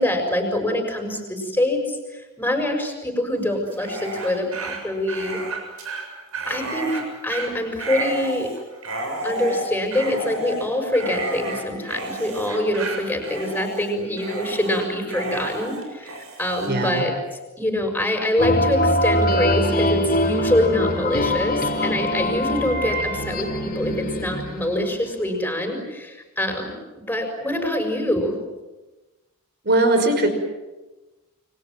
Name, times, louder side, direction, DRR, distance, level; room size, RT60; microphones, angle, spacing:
voice 1, 0.0-5.4 6.5-8.5 9.2-17.1 17.6-28.4, left 1 dB, 10° left, 4 dB, 6.5 m, -25 dB
Dog, 3.7-16.7, right 2 dB, 75° right, 7.4 m, -31 dB
voice 2, 16.7-17.0 29.6-30.3, right 2 dB, 50° right, 6 dB, 5.7 m, -19 dB
sound 1, 18.4-25.0, left 1 dB, 40° left, 4.2 m, -23 dB
29.5 x 24.5 x 7.7 m, 1.1 s
head